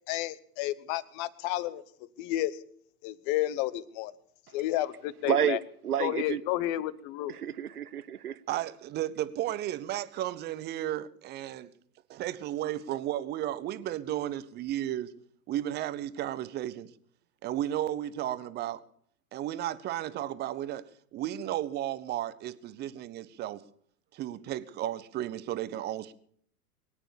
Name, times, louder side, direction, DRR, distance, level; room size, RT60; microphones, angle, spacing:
voice 1, 0.1-1.8 2.2-2.6 3.0-4.1 4.5-5.6 6.0-7.3, left 15 dB, 35° left, 1.0 m, -31 dB
voice 2, 5.2-5.6 5.8-6.4 7.3-8.4, right 9 dB, 75° right, 1.0 m, -29 dB
voice 3, 8.5-11.7 12.1-15.1 15.5-16.9 17.4-18.8 19.3-20.9 21.1-23.6 24.1-26.1, right 13 dB, 20° right, 0.8 m, -34 dB
22.5 x 9.1 x 7.1 m
figure-of-eight pair, 110°, 45 cm